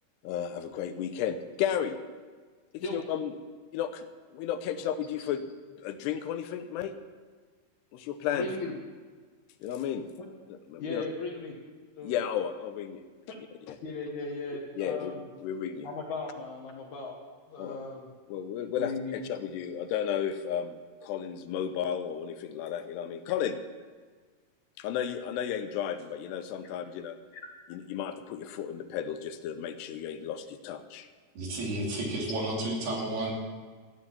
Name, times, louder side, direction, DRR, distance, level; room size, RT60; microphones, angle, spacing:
voice 1, 0.2-2.0 2.7-3.3 3.7-4.1 4.3-5.4 5.8-6.9 7.9-8.8 9.6-10.1 10.5-11.0 12.0-13.0 13.7-13.8 14.8-15.9 17.6-17.8 18.3-23.6 24.8-27.2 27.7-31.1, left 9 dB, 85° left, 9 dB, 2.9 m, -33 dB
voice 2, 8.3-8.7 10.8-11.6 12.0-12.1 13.3-13.4 13.8-15.3 15.8-17.1 17.5-18.0 18.8-19.2 27.3-27.4, left 3 dB, 60° left, 0 dB, 2.3 m, -36 dB
voice 3, 31.4-33.3, right 1 dB, 70° right, -2 dB, 4.5 m, -31 dB
14.0 x 9.6 x 7.1 m, 1.5 s
omnidirectional pair, 4.7 m